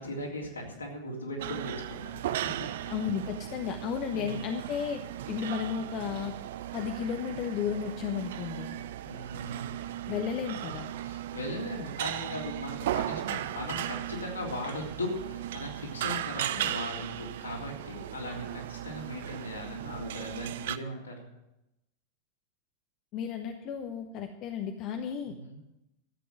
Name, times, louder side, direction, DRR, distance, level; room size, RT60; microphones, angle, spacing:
voice 1, 0.0-2.2 2.8-2.9 4.1-4.5 9.0-9.8 11.1-21.3 25.2-25.6, left 1 dB, 75° left, -2 dB, 3.4 m, -38 dB
sound 1, 1.4-20.8, right 12 dB, 55° right, 0.5 m, -37 dB
voice 2, 2.9-5.0 5.3-6.3 6.7-8.7 10.1-10.9 23.1-25.3, left 7 dB, 40° left, 5 dB, 1.1 m, -33 dB
13.0 x 8.3 x 7.6 m, 0.90 s
figure-of-eight pair, 90°, 0 cm